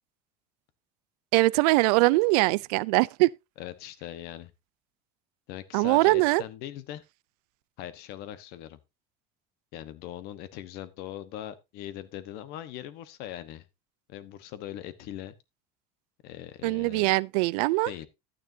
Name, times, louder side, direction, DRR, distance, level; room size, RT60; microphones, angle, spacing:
voice 1, 1.3-3.3 5.7-6.4 16.6-17.9, right 23 dB, 80° right, 0.4 m, -22 dB
voice 2, 3.6-4.5 5.5-7.0 7.8-8.8 9.7-13.7 14.1-15.3 16.2-17.1 17.9-18.1, left 12 dB, 55° left, 1.2 m, -40 dB
12.0 x 9.5 x 2.7 m
cardioid pair, 155°, 20 cm